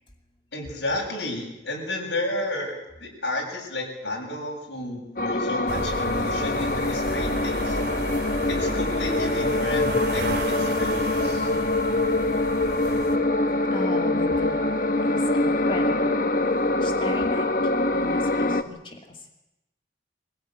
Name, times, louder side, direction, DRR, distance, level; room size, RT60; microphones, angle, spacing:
voice 1, 0.5-7.8 8.5-11.5, left 1 dB, 70° left, 0 dB, 7.7 m, -32 dB
sound 1, 5.2-18.6, left 2 dB, 50° left, 1.2 m, -24 dB
sound 2, 5.7-13.2, right 2 dB, 60° right, 3.2 m, -34 dB
voice 2, 13.5-14.6 15.0-16.0 16.8-19.3, left 1 dB, 25° left, 3 dB, 2.4 m, -37 dB
25.0 x 15.5 x 9.3 m, 0.94 s
head